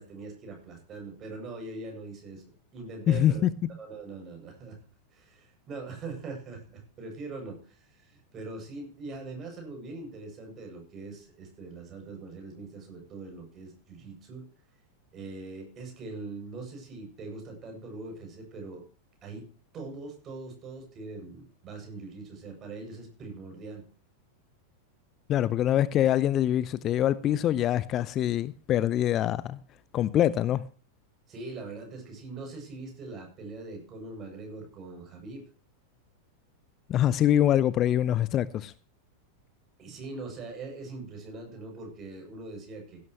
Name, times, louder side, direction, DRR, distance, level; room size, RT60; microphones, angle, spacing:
voice 1, 0.0-2.4 2.7-3.4 3.8-4.8 5.1-14.5 15.1-18.9 19.2-19.4 19.7-23.8 31.3-35.4 39.8-43.0, right 3 dB, 30° right, 8.0 m, -42 dB
voice 2, 3.1-3.5 25.3-29.6 29.9-30.6 36.9-38.7, left 11 dB, 30° left, 0.6 m, -24 dB
16.5 x 12.5 x 3.2 m
figure-of-eight pair, 90°, 0 cm